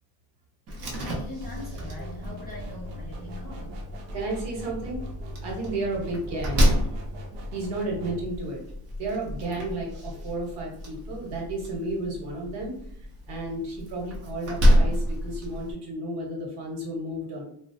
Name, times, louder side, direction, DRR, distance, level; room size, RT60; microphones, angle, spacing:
Slam, 0.7-15.7, equal, 30° right, 0.5 m, -29 dB
voice 1, 1.0-3.8, left 1 dB, 25° left, -5 dB, 0.3 m, -41 dB
sound 1, 1.4-8.3, right 1 dB, 80° right, 0.7 m, -42 dB
voice 2, 4.1-5.0 5.4-6.7 7.5-8.6 9.0-12.7 13.3-17.4, right 2 dB, 60° right, -1 dB, 1.0 m, -32 dB
2.4 x 2.0 x 2.5 m, 0.66 s
cardioid pair, 135°, 47 cm